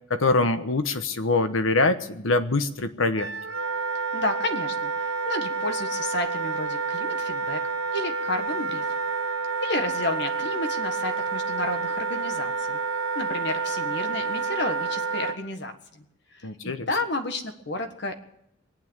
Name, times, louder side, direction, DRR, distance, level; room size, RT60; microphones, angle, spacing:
voice 1, 0.1-3.3 16.4-16.9, left 3 dB, 85° left, 10 dB, 1.1 m, -24 dB
Wind instrument woodwind instrument, 3.1-15.4, right 4 dB, 90° right, 0.8 m, -29 dB
voice 2, 4.1-8.9 9.6-12.8 13.1-16.0 16.3-18.1, left 2 dB, 60° left, 7 dB, 1.5 m, -31 dB
22.0 x 8.9 x 7.3 m, 0.79 s
head